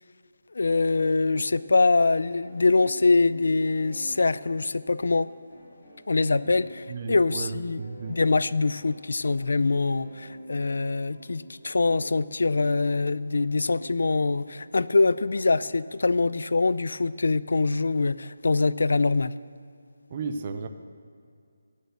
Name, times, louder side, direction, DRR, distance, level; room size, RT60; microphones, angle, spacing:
voice 1, 0.5-5.3 6.1-7.8 8.1-19.3, left 3 dB, 60° left, 17 dB, 0.4 m, -24 dB
sound 1, 0.8-15.7, equal, 15° left, 3.9 m, -48 dB
voice 2, 6.9-8.2 20.1-20.7, right 4 dB, 20° right, 7 dB, 0.5 m, -34 dB
16.0 x 6.6 x 7.9 m, 2.3 s
hypercardioid pair, 180°, 0 cm